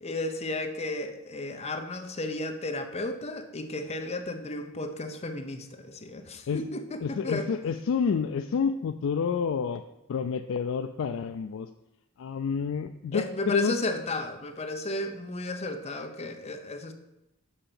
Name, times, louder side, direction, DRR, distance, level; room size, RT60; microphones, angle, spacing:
voice 1, 0.0-7.5 13.1-16.9, left 2 dB, 30° left, 6 dB, 0.7 m, -33 dB
voice 2, 7.0-9.8 10.1-11.7 12.2-13.8, left 6 dB, 65° left, 7 dB, 0.3 m, -29 dB
5.7 x 5.7 x 6.8 m, 0.93 s
head